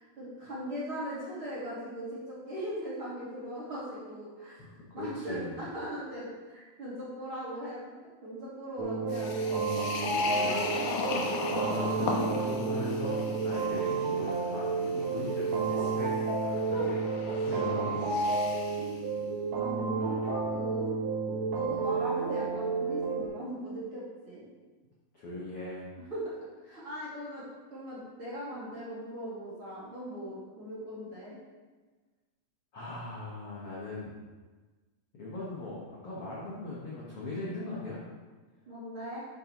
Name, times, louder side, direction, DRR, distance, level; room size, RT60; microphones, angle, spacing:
voice 1, 0.0-4.6 4.9-7.8 8.2-9.6 10.0-11.2 16.7-16.9 19.5-20.9 21.5-24.5 25.9-26.3 26.6-27.4 27.7-31.4 38.7-39.2, equal, 35° right, -9 dB, 2.8 m, -39 dB
voice 2, 4.6-5.5 10.3-10.6 11.7-16.1 16.5-18.0 19.9-20.2 25.1-25.8 32.7-34.1 35.1-38.0, left 2 dB, 60° left, -6 dB, 1.5 m, -39 dB
sound 1, 8.8-23.3, right 4 dB, 75° right, 1.7 m, -31 dB
sound 2, 9.1-18.9, left 3 dB, 75° left, 2.8 m, -37 dB
12.0 x 6.6 x 3.1 m, 1.3 s
omnidirectional pair, 4.7 m